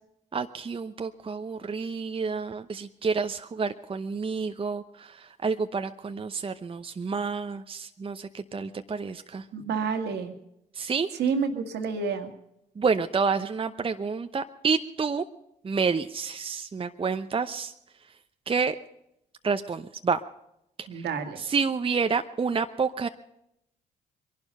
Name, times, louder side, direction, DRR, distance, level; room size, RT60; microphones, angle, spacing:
voice 1, 0.3-9.4 10.7-11.1 12.8-15.3 15.6-17.7 18.5-18.8 19.4-20.2 20.8-21.1 21.4-23.1, right 5 dB, 30° right, 8 dB, 0.8 m, -29 dB
voice 2, 9.5-10.3 11.2-12.3 20.9-21.4, right 5 dB, 70° right, 6 dB, 2.0 m, -29 dB
22.5 x 11.5 x 5.5 m, 0.79 s
hypercardioid pair, 50°, 18 cm